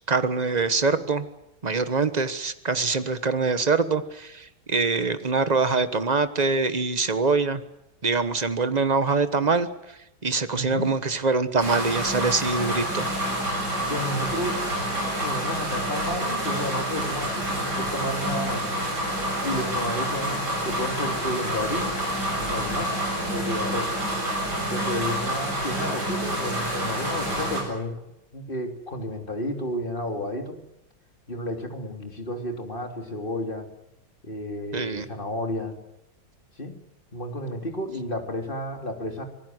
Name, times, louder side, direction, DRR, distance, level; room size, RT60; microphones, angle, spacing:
voice 1, 0.1-1.3 1.6-7.6 8.0-9.7 10.2-13.1 34.7-35.1, right 4 dB, 25° right, 11 dB, 1.1 m, -24 dB
voice 2, 10.5-10.9 13.9-14.6 15.2-18.6 19.4-22.0 22.4-23.0 23.3-23.9 24.7-28.0 28.3-30.6 31.3-33.7 34.2-35.8 36.6-36.8 37.1-39.2, left 1 dB, 25° left, 4 dB, 3.4 m, -31 dB
sound 1, 11.6-27.6, right 1 dB, 55° right, 8.5 m, -28 dB
26.0 x 19.5 x 8.0 m, 0.86 s
omnidirectional pair, 2.2 m